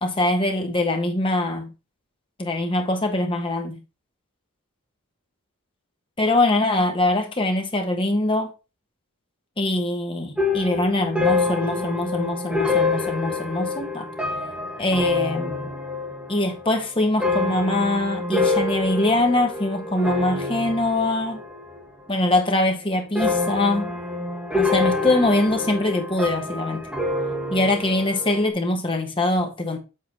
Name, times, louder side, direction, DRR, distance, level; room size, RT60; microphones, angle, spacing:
voice 1, 0.0-1.7 2.4-3.8 6.2-8.5 9.6-14.1 14.8-15.7 16.3-21.4 22.1-23.9 24.5-26.8 27.5-29.8, left 2 dB, 25° left, 1.2 m, -23 dB
sound 1, 10.4-21.8 22.1-22.7 23.1-28.5, left 3 dB, 5° right, 2.0 m, -26 dB
7.6 x 3.8 x 4.5 m
head